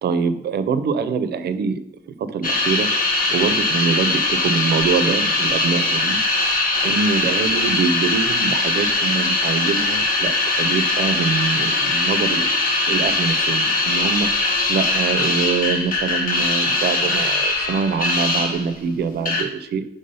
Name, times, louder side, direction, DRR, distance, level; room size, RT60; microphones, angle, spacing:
voice 1, 0.0-1.8 2.1-2.9 3.3-6.2 6.6-12.5 12.9-14.3 14.7-19.9, right 5 dB, 70° right, 12 dB, 0.5 m, -24 dB
sound 1, 2.4-18.8 19.2-19.4, left 2 dB, 50° left, 1.0 m, -21 dB
5.4 x 3.6 x 5.4 m, 0.79 s
wide cardioid pair, 165°, 18 cm